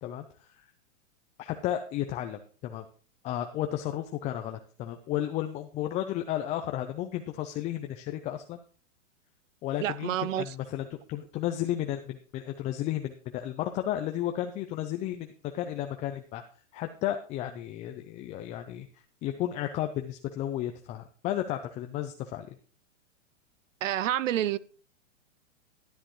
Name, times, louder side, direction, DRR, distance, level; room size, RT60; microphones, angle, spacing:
voice 1, 0.0-0.7 1.4-2.8 3.2-8.6 9.6-15.3 15.5-16.4 16.7-22.6, left 12 dB, 20° left, 0.4 m, -33 dB
voice 2, 9.8-10.5 23.8-24.6, right 12 dB, 75° right, 0.6 m, -28 dB
12.5 x 10.0 x 3.0 m
hypercardioid pair, 125°, 38 cm